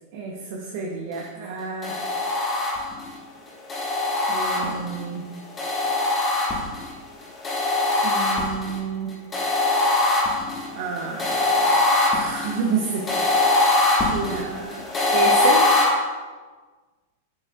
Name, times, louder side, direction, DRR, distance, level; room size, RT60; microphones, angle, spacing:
voice 1, 0.1-2.0 4.3-5.3 8.0-9.1 10.7-11.8 12.1-15.6, right 4 dB, 50° right, -1 dB, 1.0 m, -30 dB
sound 1, 1.8-3.1 3.7-5.0 5.6-6.9 7.4-8.8 9.3-15.9, left 2 dB, 20° left, 1.6 m, -22 dB
7.6 x 7.6 x 2.5 m, 1.4 s
figure-of-eight pair, 95°, 0 cm